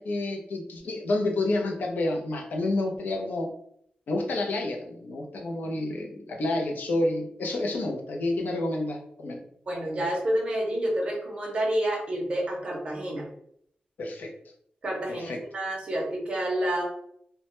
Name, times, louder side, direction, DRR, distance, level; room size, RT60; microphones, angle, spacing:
voice 1, 0.0-3.5 4.1-9.4 14.0-14.3 15.1-15.4, left 2 dB, 70° left, 2 dB, 0.4 m, -29 dB
voice 2, 9.7-13.3 14.8-16.8, right 1 dB, 35° right, -2 dB, 0.5 m, -29 dB
2.1 x 2.1 x 2.9 m, 0.70 s
wide cardioid pair, 160°, 3 cm